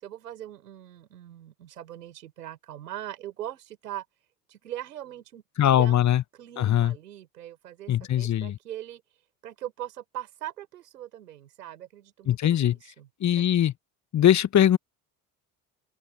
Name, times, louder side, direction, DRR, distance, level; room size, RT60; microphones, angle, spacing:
voice 1, 0.0-4.0 4.5-5.4 5.7-6.0 6.3-9.0 9.4-13.1 13.3-13.4, right 12 dB, 85° right, 5.1 m, -41 dB
voice 2, 5.6-6.2 6.6-6.9 7.9-8.6 12.3-12.8 13.2-13.7 14.1-14.8, left 11 dB, 40° left, 1.2 m, -21 dB
open air
hypercardioid pair, 60°, 46 cm